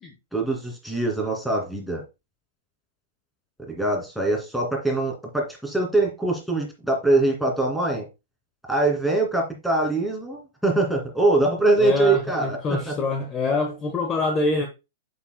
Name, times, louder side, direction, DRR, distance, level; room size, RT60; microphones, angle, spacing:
voice 1, 0.3-2.0 3.6-8.1 8.7-13.0, right 2 dB, ahead, 2.5 m, -23 dB
voice 2, 11.8-14.7, left 3 dB, 20° left, 1.1 m, -25 dB
8.1 x 7.5 x 2.2 m
hypercardioid pair, 135°, 0 cm